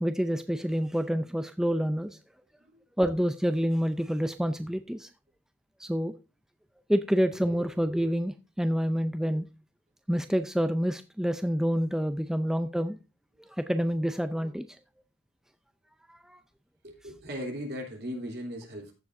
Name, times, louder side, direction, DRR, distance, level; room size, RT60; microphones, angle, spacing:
voice 1, 0.0-2.2 3.0-5.1 5.8-6.1 6.9-9.5 10.1-13.0 13.4-14.7 16.1-16.4, equal, 5° right, 0.4 m, -28 dB
voice 2, 16.8-18.9, equal, 55° right, 3.2 m, -37 dB
15.0 x 7.3 x 2.6 m
head